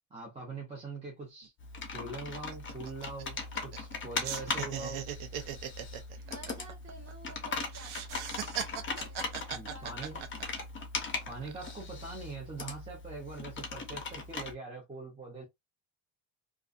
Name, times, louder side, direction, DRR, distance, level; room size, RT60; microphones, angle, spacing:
voice 1, 0.1-1.5 1.9-5.0 9.5-10.2 11.3-15.5, right 3 dB, 15° right, 0.6 m, -43 dB
sound 1, 1.4-1.5 1.8-2.0 2.3-4.0 4.2-7.3 7.7-10.8 11.3-11.8, right 9 dB, 85° right, 0.7 m, -39 dB
Computer keyboard, 1.6-14.5, left 4 dB, 25° left, 0.6 m, -39 dB
voice 2, 6.2-10.6 11.0-11.3, right 3 dB, 35° right, 1.2 m, -53 dB
2.4 x 2.3 x 2.4 m
cardioid pair, 170°, 47 cm